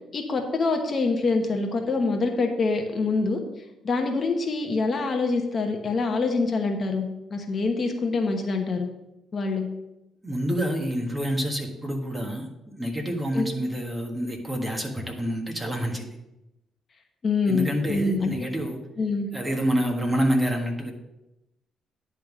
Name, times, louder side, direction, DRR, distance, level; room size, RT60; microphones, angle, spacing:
voice 1, 0.1-3.4 3.8-7.1 7.3-8.9 9.3-9.7 13.3-13.4 17.2-18.5 19.0-19.3, left 3 dB, 45° left, 4 dB, 1.1 m, -25 dB
voice 2, 10.2-12.5 12.8-16.1 17.5-18.8 19.3-20.9, equal, 15° right, 2 dB, 1.6 m, -27 dB
10.5 x 3.6 x 6.1 m, 0.94 s
cardioid pair, 90°, 0 cm